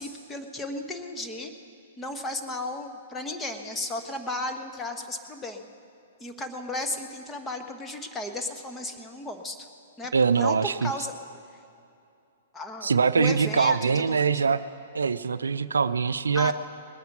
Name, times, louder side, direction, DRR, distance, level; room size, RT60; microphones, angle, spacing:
voice 1, 0.0-1.5 2.0-5.7 6.2-9.6 10.0-11.2 12.5-14.2 16.3-16.5, left 2 dB, 15° left, 4 dB, 1.2 m, -34 dB
voice 2, 10.1-10.9 12.8-14.6 14.9-16.5, right 5 dB, 80° right, 14 dB, 0.4 m, -23 dB
20.5 x 9.3 x 5.9 m, 2.6 s
hypercardioid pair, 115°, 0 cm